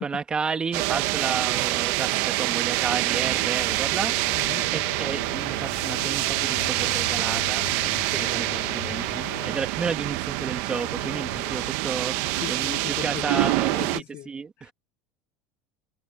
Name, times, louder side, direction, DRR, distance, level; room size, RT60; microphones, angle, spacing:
voice 1, 0.0-14.7, right 5 dB, 15° right, 2.0 m, -32 dB
sound 1, 0.7-14.0, right 20 dB, 60° right, 1.1 m, -26 dB
sound 2, 2.6-9.8 10.7-11.8, left 25 dB, 80° left, 6.4 m, -40 dB
voice 2, 12.1-14.3 14.6-14.7, left 14 dB, 40° left, 0.6 m, -38 dB
cardioid pair, 160°, 6 cm